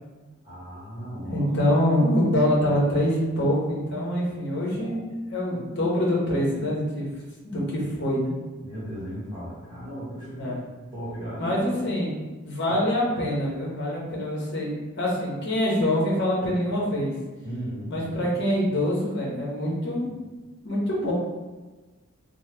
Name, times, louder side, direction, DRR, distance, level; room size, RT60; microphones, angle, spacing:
voice 1, 0.4-1.5 4.7-5.0 5.5-5.6 8.6-10.5 10.9-11.8 12.6-12.8 17.4-17.9, equal, 20° right, -10 dB, 1.1 m, -36 dB
voice 2, 1.2-7.1 7.4-8.3 10.3-10.6 11.4-12.1 12.4-17.1 17.9-20.2 20.6-21.1, left 1 dB, 55° left, -4 dB, 0.8 m, -25 dB
2.8 x 2.0 x 3.3 m, 1.3 s
head